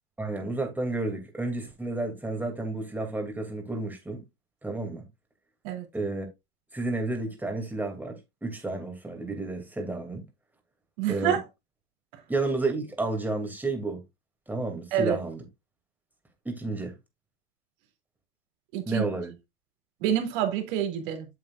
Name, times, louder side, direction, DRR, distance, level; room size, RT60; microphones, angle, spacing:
voice 1, 0.2-4.2 4.6-5.0 5.9-6.3 6.7-10.2 11.1-11.4 12.3-14.0 14.5-15.4 16.4-16.9 18.9-19.3, right 2 dB, 5° right, 2.7 m, -31 dB
voice 2, 11.0-11.4 14.9-15.2 18.7-19.0 20.0-21.3, right 10 dB, 60° right, 3.0 m, -27 dB
7.9 x 7.6 x 2.5 m
hypercardioid pair, 110°, 30 cm